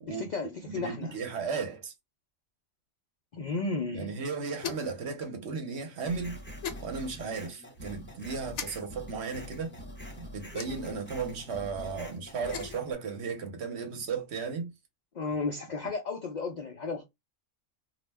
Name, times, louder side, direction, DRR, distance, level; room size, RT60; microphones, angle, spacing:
voice 1, 0.1-1.2 3.3-4.2 15.1-17.0, left 3 dB, 80° left, 0.4 m, -34 dB
voice 2, 0.7-1.9 3.9-6.4 6.8-9.7 10.2-14.7, right 5 dB, 60° right, 0.9 m, -35 dB
sound 1, 4.6-5.0 6.6-6.8 8.5-8.7 10.5-11.0 12.3-12.8, left 7 dB, 65° left, 0.9 m, -38 dB
sound 2, 6.0-12.9, equal, 10° left, 0.8 m, -45 dB
2.4 x 2.1 x 3.3 m
omnidirectional pair, 1.4 m